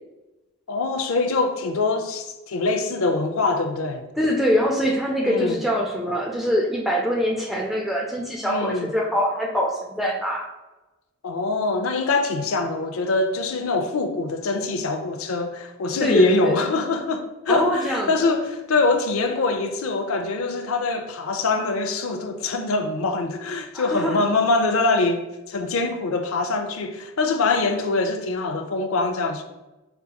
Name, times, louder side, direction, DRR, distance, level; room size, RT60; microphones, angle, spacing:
voice 1, 0.7-4.0 5.2-5.6 8.4-8.9 11.2-29.4, left 3 dB, 75° left, 0.4 m, -24 dB
voice 2, 4.2-10.5 16.0-16.7 17.5-18.3 23.7-24.2, equal, ahead, 0.4 m, -24 dB
5.4 x 2.8 x 2.2 m
head